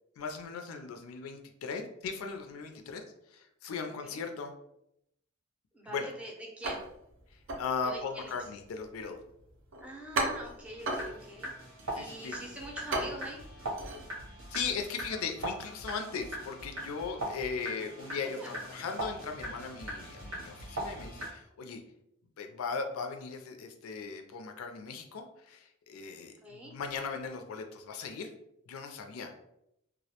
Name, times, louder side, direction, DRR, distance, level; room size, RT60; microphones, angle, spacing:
voice 1, 0.2-4.5 5.9-6.1 7.3-9.2 11.9-12.4 14.5-21.8 22.4-28.3 28.7-29.3, left 5 dB, 85° left, 5 dB, 0.4 m, -38 dB
voice 2, 5.7-6.8 7.8-8.3 9.8-11.5 11.9-13.4 18.3-18.5 26.4-26.7, equal, 5° right, -2 dB, 0.5 m, -44 dB
sound 1, 6.6-14.8, right 2 dB, 65° right, 0.4 m, -38 dB
sound 2, 10.6-21.3, right 1 dB, 85° right, 0.9 m, -41 dB
2.3 x 2.1 x 2.8 m, 0.80 s
head